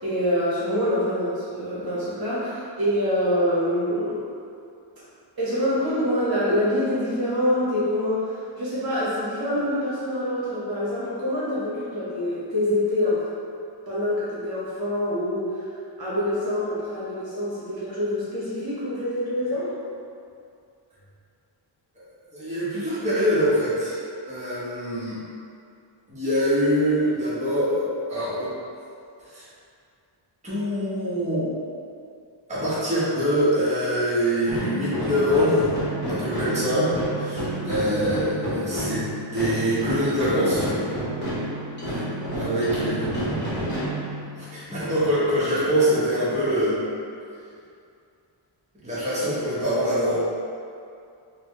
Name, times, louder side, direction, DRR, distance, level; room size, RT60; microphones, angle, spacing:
voice 1, 0.0-4.2 5.4-13.2 13.9-15.7 16.0-19.7 37.5-37.8 42.2-42.3, left 1 dB, 50° right, -9 dB, 1.1 m, -25 dB
voice 2, 22.3-24.0 24.3-25.2 26.1-28.5 29.3-29.4 30.4-31.5 32.5-35.6 36.0-39.0 39.3-40.7 41.8-42.1 42.3-43.7 44.3-46.8 48.8-50.2, equal, 15° right, -11 dB, 1.1 m, -24 dB
sound 1, 34.5-44.6, equal, 25° left, 1.1 m, -30 dB
4.1 x 2.2 x 3.0 m, 2.4 s
wide cardioid pair, 110°, 48 cm